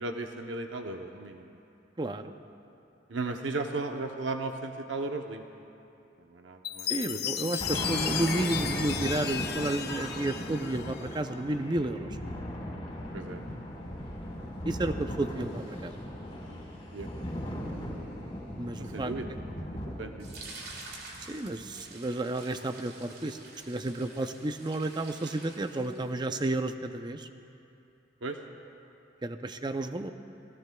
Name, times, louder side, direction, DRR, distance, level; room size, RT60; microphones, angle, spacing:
voice 1, 0.0-1.6 3.1-5.4 6.3-7.4 13.1-13.4 16.9-17.1 18.8-19.3 19.6-19.7 20.0-20.3 28.2-28.4, right 3 dB, 80° right, 4 dB, 0.8 m, -36 dB
voice 2, 2.0-2.3 6.9-12.2 14.6-15.9 18.6-19.1 21.3-23.4 23.7-27.3 29.2-30.1, right 2 dB, 25° right, 8 dB, 0.5 m, -32 dB
Chime, 6.6-11.3, left 9 dB, 55° left, 0.7 m, -35 dB
Thunder, 7.2-21.8, left 1 dB, 35° left, 4.3 m, -38 dB
sound 1, 20.2-26.2, right 3 dB, 55° right, 2.5 m, -48 dB
30.0 x 18.0 x 2.3 m, 2.8 s
head